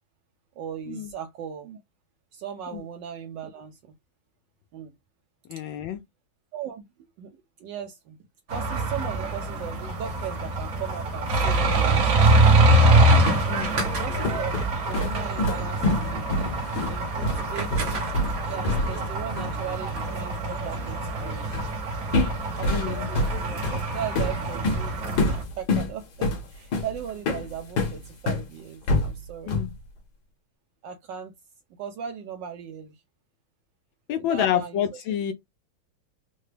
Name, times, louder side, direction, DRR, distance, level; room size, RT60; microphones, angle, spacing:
voice 1, 0.6-1.8 2.3-3.9 4.7-4.9 6.5-6.9 7.2-8.2 8.5-12.6 14.0-16.3 16.9-18.1 18.5-21.6 22.6-25.0 25.3-29.6 30.8-31.3 31.8-33.0 34.2-35.0, right 8 dB, 75° right, 1.2 m, -38 dB
voice 2, 5.5-6.0 13.5-13.9 22.7-23.1 29.5-29.7 34.1-35.3, left 10 dB, 80° left, 1.3 m, -28 dB
sound 1, 8.5-25.4, right 2 dB, 50° right, 1.3 m, -24 dB
sound 2, 12.9-19.1 19.4-19.6 21.5-21.8 22.1-28.5 28.9-29.8, left 2 dB, 60° left, 1.4 m, -27 dB
3.9 x 2.2 x 3.2 m
omnidirectional pair, 2.1 m